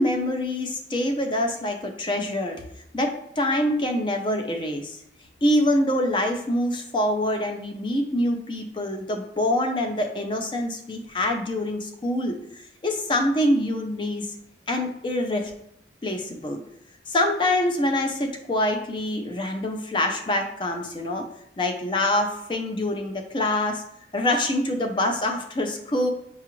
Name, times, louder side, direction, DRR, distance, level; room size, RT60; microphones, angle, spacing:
voice 1, 0.0-2.6 2.9-5.0 5.4-12.4 12.8-14.3 14.7-15.5 16.0-16.6 17.1-21.2 21.6-23.8 24.1-26.1, left 1 dB, 25° left, 4 dB, 0.4 m, -25 dB
5.7 x 2.4 x 3.0 m, 0.75 s
head